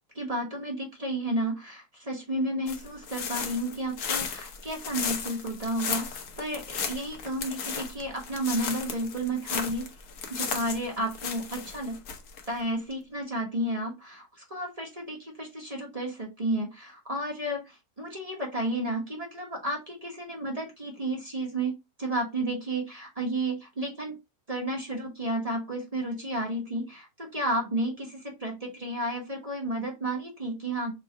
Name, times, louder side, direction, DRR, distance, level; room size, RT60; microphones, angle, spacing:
voice 1, 0.1-9.9 10.3-12.0 12.5-24.2 24.5-30.9, right 1 dB, 25° right, 0 dB, 0.9 m, -32 dB
sound 1, 2.7-12.5, left 6 dB, 60° left, 1.1 m, -35 dB
3.7 x 2.3 x 4.4 m, 0.22 s
omnidirectional pair, 1.9 m